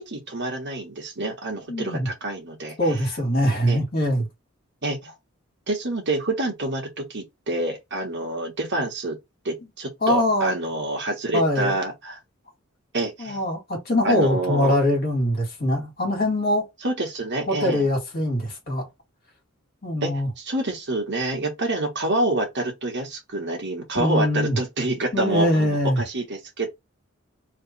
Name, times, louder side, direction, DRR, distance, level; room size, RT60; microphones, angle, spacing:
voice 1, 0.0-2.9 3.7-3.8 4.8-5.1 5.7-9.2 9.4-12.2 12.9-13.4 14.0-14.7 16.8-17.9 20.0-26.7, right 2 dB, 55° right, 1.4 m, -27 dB
voice 2, 1.7-2.1 2.8-4.3 10.0-10.5 11.3-11.8 13.2-16.7 17.5-18.8 19.8-20.3 24.0-24.6 25.1-26.0, left 1 dB, 45° left, 2.0 m, -23 dB
3.3 x 3.0 x 4.1 m
head